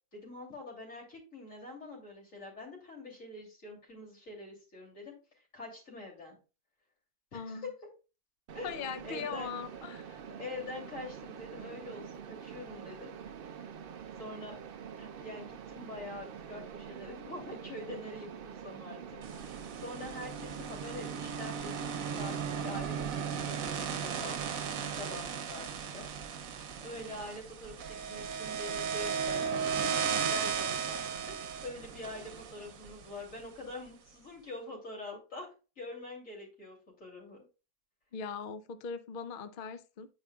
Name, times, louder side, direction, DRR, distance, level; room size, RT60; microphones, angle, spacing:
voice 1, 0.1-5.1 5.5-6.4 7.3-7.7 8.5-8.8 9.0-9.5 10.4-13.1 14.2-14.6 15.0-24.4 24.9-26.1 26.8-31.0 31.3-37.4, left 2 dB, 55° left, 3.1 m, -45 dB
voice 2, 7.3-7.7 8.6-10.2 38.1-40.1, left 6 dB, 85° left, 0.4 m, -40 dB
Mechanisms, 8.5-25.2, right 7 dB, 85° right, 0.5 m, -46 dB
sound 1, 19.2-33.4, right 7 dB, 65° right, 1.1 m, -36 dB
9.5 x 4.8 x 2.3 m
omnidirectional pair, 1.6 m